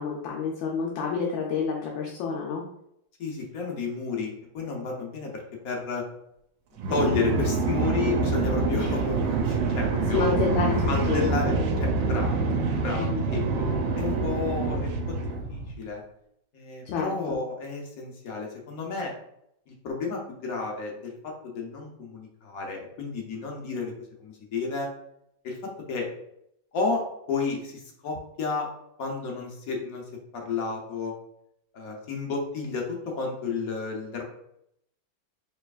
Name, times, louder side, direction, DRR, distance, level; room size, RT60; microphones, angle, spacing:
voice 1, 0.0-2.6 10.0-11.3 13.0-13.2 16.9-17.4, left 5 dB, 80° left, -1 dB, 1.3 m, -29 dB
voice 2, 3.2-6.0 6.9-10.4 10.9-13.4 13.9-16.0 16.5-19.1 19.7-23.9 24.2-24.9 25.4-26.1 26.7-28.7 29.0-30.0 30.3-31.1 31.7-34.2, left 4 dB, 60° left, 0 dB, 1.0 m, -32 dB
sound 1, 6.8-15.7, right 3 dB, 80° right, 1.3 m, -26 dB
4.5 x 3.3 x 2.4 m, 0.75 s
omnidirectional pair, 2.1 m